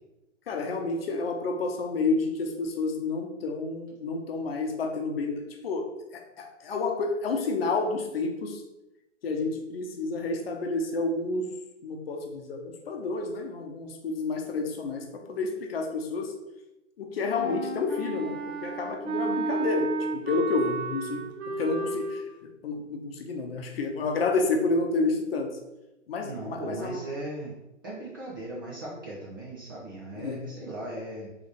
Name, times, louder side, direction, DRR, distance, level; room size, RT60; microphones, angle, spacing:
voice 1, 0.5-8.6 9.2-11.5 11.8-16.3 17.0-21.3 21.6-22.3 22.6-25.6 26.1-27.0 30.2-30.4, left 3 dB, 50° left, 3 dB, 0.7 m, -30 dB
Wind instrument woodwind instrument, 17.4-22.3, right 3 dB, 55° right, 0.9 m, -32 dB
voice 2, 26.2-27.6 27.8-31.3, right 1 dB, 20° right, -5 dB, 0.4 m, -38 dB
3.8 x 3.3 x 3.3 m, 0.95 s
hypercardioid pair, 135°, 38 cm